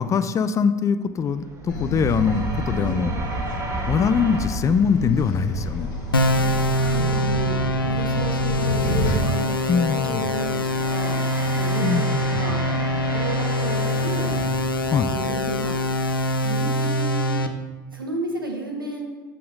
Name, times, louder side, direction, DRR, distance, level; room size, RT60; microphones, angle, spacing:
voice 1, 0.0-3.1 3.9-5.9 9.7-10.4 11.8-12.6 14.9-15.1, left 6 dB, 30° left, 11 dB, 0.4 m, -23 dB
sound 1, 1.1-17.4, right 2 dB, 25° right, 1.5 m, -37 dB
sound 2, 1.7-9.2, equal, 65° left, 1.3 m, -29 dB
sound 3, 6.1-17.5, left 1 dB, 90° left, 0.4 m, -24 dB
voice 2, 6.5-7.6 7.8-11.2 11.6-12.6 13.1-14.3 15.1-15.8 16.4-17.4 17.9-19.1, right 2 dB, 90° right, 2 dB, 1.0 m, -32 dB
7.4 x 4.3 x 5.3 m, 1.3 s
figure-of-eight pair, 70°, 11 cm